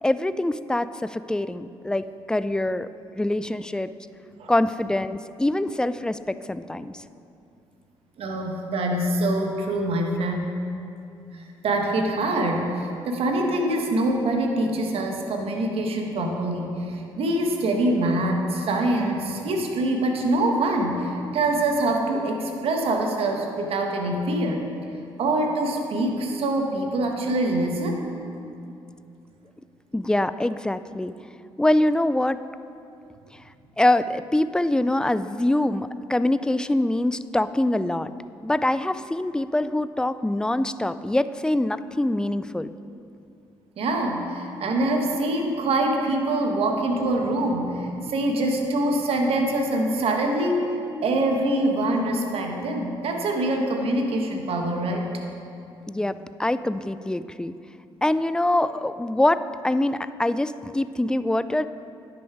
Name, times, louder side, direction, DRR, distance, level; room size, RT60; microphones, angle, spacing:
voice 1, 0.0-2.9 3.2-3.9 4.5-6.9 29.9-31.1 31.6-32.4 33.8-38.1 38.4-42.7 55.9-57.5 58.0-61.7, left 1 dB, 5° left, 14 dB, 0.3 m, -24 dB
voice 2, 8.2-10.4 11.6-24.6 25.2-28.0 43.8-50.7 51.0-55.1, right 1 dB, 60° right, 2 dB, 1.3 m, -24 dB
10.0 x 6.1 x 4.8 m, 2.6 s
hypercardioid pair, 55°, 11 cm